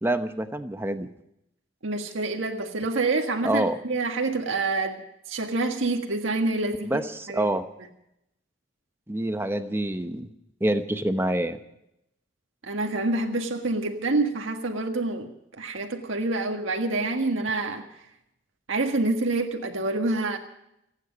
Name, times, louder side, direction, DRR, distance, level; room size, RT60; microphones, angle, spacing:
voice 1, 0.0-1.1 3.4-3.7 6.8-7.6 9.1-10.3 10.6-11.6, right 1 dB, 10° right, 8 dB, 0.9 m, -26 dB
voice 2, 1.8-7.0 7.3-7.5 12.6-18.0 18.7-20.4, right 2 dB, 90° right, 3 dB, 1.7 m, -27 dB
28.5 x 9.8 x 5.2 m, 0.80 s
head